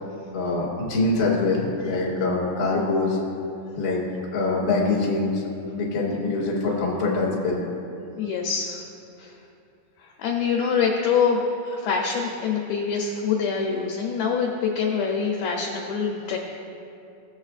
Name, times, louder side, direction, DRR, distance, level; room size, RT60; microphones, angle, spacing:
voice 1, 0.3-3.2 3.7-4.0 4.3-5.4 5.7-7.6, left 3 dB, 40° left, -5 dB, 1.4 m, -24 dB
voice 2, 8.2-8.8 9.2-9.3 10.2-16.4, left 6 dB, 80° left, 0 dB, 2.2 m, -25 dB
17.5 x 7.4 x 2.4 m, 2.6 s
omnidirectional pair, 5.0 m